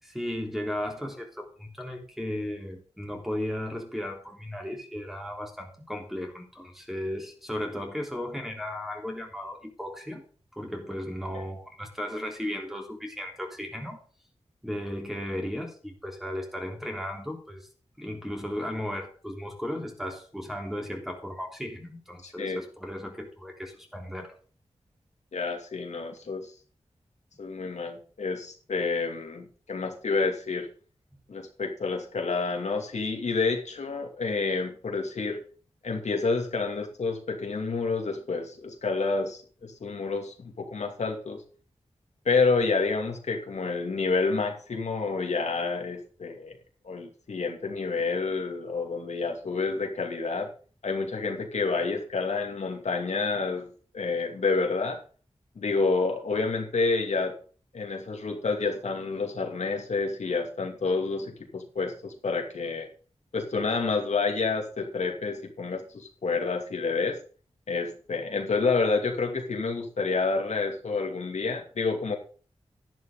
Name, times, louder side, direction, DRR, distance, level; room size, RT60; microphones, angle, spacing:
voice 1, 0.0-10.2 10.5-14.0 14.6-17.7 18.0-24.4, left 1 dB, ahead, 1 dB, 3.6 m, -35 dB
voice 2, 22.2-22.6 25.3-26.5 27.4-30.7 31.3-35.4 35.8-41.4 42.2-46.6 46.8-50.5 50.8-55.0 55.6-57.4 57.7-62.9 63.3-67.2 67.7-72.2, left 4 dB, 85° left, 2 dB, 2.5 m, -29 dB
12.0 x 11.0 x 3.8 m, 0.40 s
wide cardioid pair, 80°, 11 cm